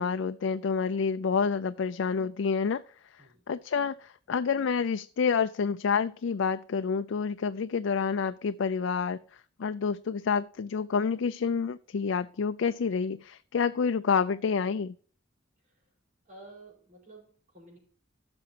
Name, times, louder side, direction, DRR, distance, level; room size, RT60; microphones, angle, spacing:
voice 1, 0.0-2.8 3.1-9.2 9.6-14.9, left 5 dB, 75° left, 10 dB, 0.4 m, -28 dB
voice 2, 16.2-17.8, right 2 dB, 40° right, -2 dB, 4.9 m, -51 dB
16.0 x 6.1 x 2.8 m, 0.44 s
head